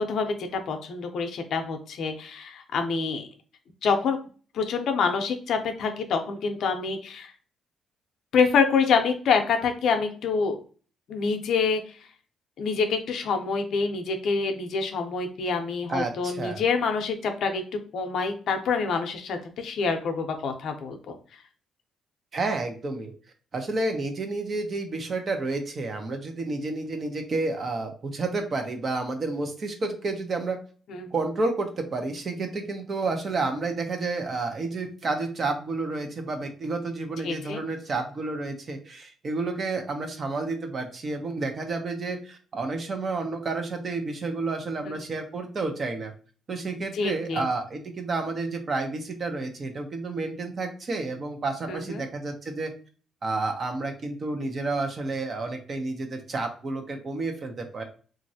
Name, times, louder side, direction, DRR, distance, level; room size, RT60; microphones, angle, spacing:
voice 1, 0.0-3.3 3.8-4.2 4.5-7.3 8.3-10.6 11.1-11.8 12.6-17.6 17.9-21.2 30.9-31.1 37.2-37.6 44.8-45.0 46.9-47.5 51.7-52.0, left 5 dB, 70° left, 6 dB, 0.6 m, -26 dB
voice 2, 15.9-16.6 22.3-23.1 23.5-30.6 31.1-46.1 46.5-52.7 53.2-57.8, right 3 dB, 45° right, 5 dB, 0.7 m, -30 dB
3.1 x 2.5 x 2.7 m, 0.40 s
cardioid pair, 105°, 0 cm